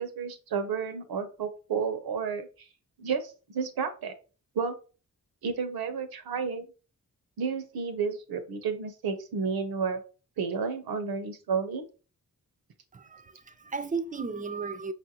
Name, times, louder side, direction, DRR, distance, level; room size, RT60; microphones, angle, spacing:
voice 1, 0.0-2.5 3.0-4.1 4.5-4.7 5.4-6.7 7.4-10.0 10.4-11.8, right 5 dB, 85° right, 0.7 m, -31 dB
voice 2, 12.9-14.9, right 4 dB, 25° right, 0.4 m, -35 dB
5.1 x 2.5 x 2.8 m
cardioid pair, 60°, 36 cm